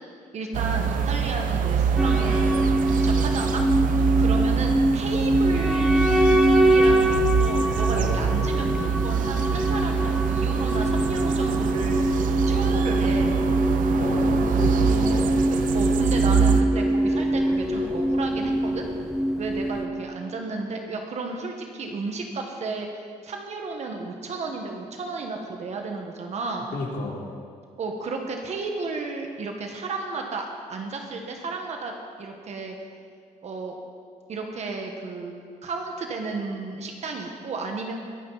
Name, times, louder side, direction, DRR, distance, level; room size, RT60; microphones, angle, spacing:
voice 1, 0.3-2.5 2.9-3.6 4.2-6.2 6.6-12.0 12.5-13.4 15.1-18.9 19.4-22.9 23.2-26.7 27.8-31.9 32.2-32.7 33.4-33.8 34.3-35.3 35.6-37.9, right 3 dB, 55° right, 2 dB, 1.5 m, -33 dB
sound 1, 0.5-16.6, right 7 dB, 75° right, 0.7 m, -25 dB
sound 2, 2.0-19.8, right 1 dB, 5° right, 1.0 m, -23 dB
voice 2, 8.0-9.0 14.0-15.3 26.7-27.2, left 3 dB, 75° left, -2 dB, 3.0 m, -31 dB
21.5 x 9.6 x 4.1 m, 2.1 s
cardioid pair, 115°, 14 cm